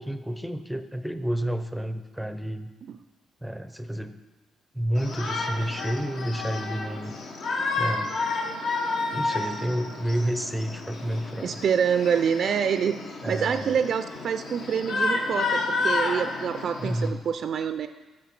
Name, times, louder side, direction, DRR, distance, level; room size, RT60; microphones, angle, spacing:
voice 1, 0.0-2.7 3.4-4.2 4.7-7.1 7.7-8.2 9.1-11.6 13.2-13.8 16.8-17.2, equal, ahead, 9 dB, 0.5 m, -30 dB
Shout, 4.9-17.1, left 3 dB, 65° left, 1.1 m, -31 dB
sound 1, 9.0-9.4 9.8-11.4 11.8-12.7 13.3-13.8, left 2 dB, 50° left, 3.3 m, -52 dB
voice 2, 11.4-13.0 13.3-17.9, right 7 dB, 60° right, 9 dB, 0.3 m, -26 dB
7.4 x 6.4 x 5.9 m, 1.2 s
cardioid pair, 90°, 0 cm